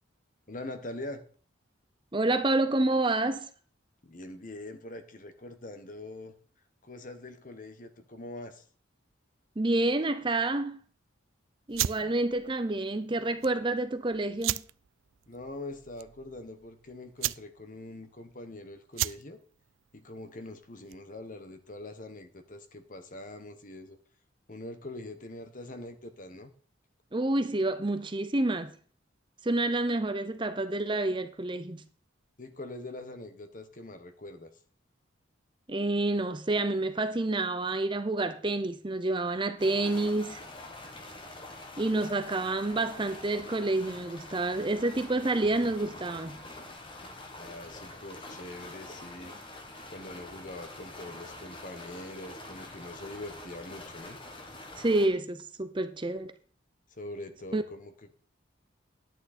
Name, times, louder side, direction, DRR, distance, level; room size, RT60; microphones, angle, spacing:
voice 1, 0.5-1.2 4.0-6.3 6.8-8.6 12.0-12.1 15.3-19.4 19.9-24.0 24.5-26.5 32.4-34.5 47.3-49.5 49.9-54.2 56.9-58.1, left 2 dB, 40° left, 1.2 m, -43 dB
voice 2, 2.1-3.5 9.6-10.8 11.7-14.6 27.1-28.7 29.4-31.8 35.7-40.4 41.8-46.4 54.8-56.3 57.5-57.6, right 2 dB, 25° right, 0.6 m, -28 dB
sound 1, 11.7-21.2, right 14 dB, 80° right, 0.4 m, -37 dB
sound 2, 39.6-55.1, left 2 dB, 25° left, 1.4 m, -45 dB
10.5 x 9.0 x 4.3 m
head